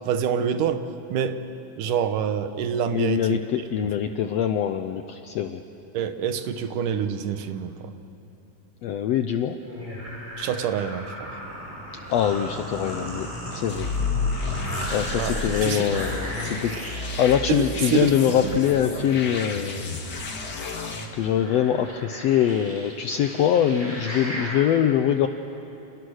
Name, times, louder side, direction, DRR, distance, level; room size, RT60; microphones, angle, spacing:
voice 1, 0.1-1.5 1.8-3.4 5.9-7.9 10.4-11.3 15.2-15.9 17.5-18.1 18.4-18.6, right 8 dB, 75° right, 10 dB, 2.5 m, -27 dB
voice 2, 2.9-5.6 8.8-9.6 12.1-13.9 14.9-20.0 21.1-25.3, left 9 dB, 80° left, 8 dB, 1.5 m, -23 dB
sound 1, 9.6-24.6, equal, 5° right, 7.1 m, -36 dB
sound 2, 13.7-21.1, left 4 dB, 40° left, 1.9 m, -31 dB
29.5 x 28.0 x 6.5 m, 2.8 s
omnidirectional pair, 3.8 m